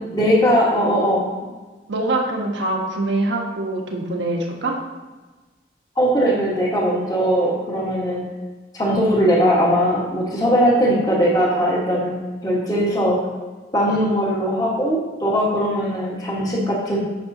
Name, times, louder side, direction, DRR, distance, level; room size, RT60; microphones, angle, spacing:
voice 1, 0.1-1.3 6.0-8.3 8.7-13.2 13.7-17.0, equal, 20° left, -3 dB, 1.4 m, -19 dB
voice 2, 1.9-4.7 15.6-16.0, right 2 dB, 90° right, 0 dB, 1.3 m, -24 dB
8.7 x 6.2 x 2.8 m, 1.3 s
head